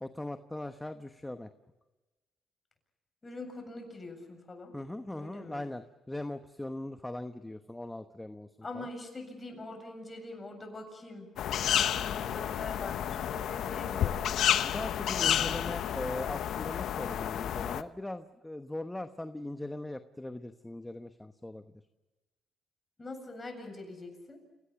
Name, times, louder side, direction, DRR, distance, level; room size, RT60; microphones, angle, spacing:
voice 1, 0.0-1.5 4.7-8.5 8.7-8.9 14.6-21.6, left 1 dB, 10° left, 8 dB, 1.1 m, -40 dB
voice 2, 3.2-4.7 5.1-5.6 8.6-11.3 11.7-14.3 23.0-24.4, left 2 dB, 25° left, 4 dB, 7.7 m, -43 dB
sound 1, 11.4-17.8, left 10 dB, 75° left, 0.9 m, -30 dB
29.5 x 18.5 x 7.1 m, 1.2 s
cardioid pair, 90°, 0 cm